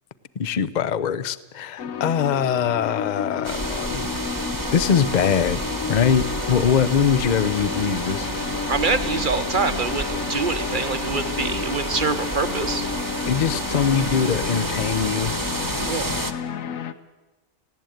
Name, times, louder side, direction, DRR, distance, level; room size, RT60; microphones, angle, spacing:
voice 1, 0.4-4.2 4.7-5.6 5.9-8.3 13.3-15.3, left 7 dB, 40° left, 16 dB, 0.6 m, -22 dB
sound 1, 1.8-16.9, left 7 dB, 60° left, 1.3 m, -31 dB
sound 2, 3.4-16.3, right 2 dB, 15° right, 1.1 m, -30 dB
voice 2, 8.7-12.9 15.9-16.1, right 4 dB, 40° right, 10 dB, 0.9 m, -25 dB
18.5 x 16.5 x 9.3 m, 1.1 s
omnidirectional pair, 1.6 m